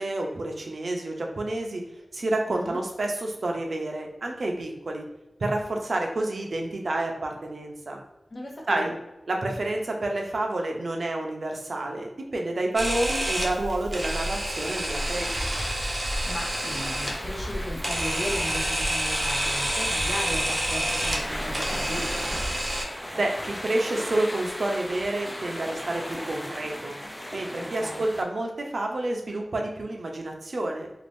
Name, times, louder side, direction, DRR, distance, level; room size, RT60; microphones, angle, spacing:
voice 1, 0.0-1.8 2.1-5.0 5.4-8.0 8.7-8.9 9.3-15.6 23.2-27.0 27.3-30.9, right 2 dB, 70° right, 2 dB, 0.5 m, -29 dB
voice 2, 2.5-2.8 8.3-9.0 16.3-22.3 27.6-28.0, equal, 45° left, -1 dB, 0.8 m, -36 dB
Camera, 12.8-22.8, right 1 dB, 30° right, 0.7 m, -28 dB
sound 1, 15.0-28.2, equal, 10° left, 0.5 m, -37 dB
2.5 x 2.5 x 3.4 m, 0.95 s
wide cardioid pair, 80°, 0 cm